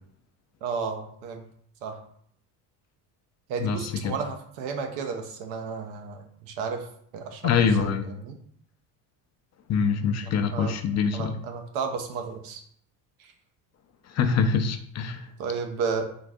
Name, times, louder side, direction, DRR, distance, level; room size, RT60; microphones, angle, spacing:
voice 1, 0.6-1.5 1.8-2.0 3.5-6.9 7.1-8.4 10.2-10.8 11.1-12.6 13.2-13.3 15.4-16.0, right 5 dB, 80° right, 5 dB, 0.8 m, -33 dB
voice 2, 7.4-8.0 9.7-11.4 14.1-15.3, left 6 dB, 40° left, 7 dB, 0.5 m, -24 dB
3.8 x 2.5 x 3.5 m, 0.64 s
supercardioid pair, 100°, 45 cm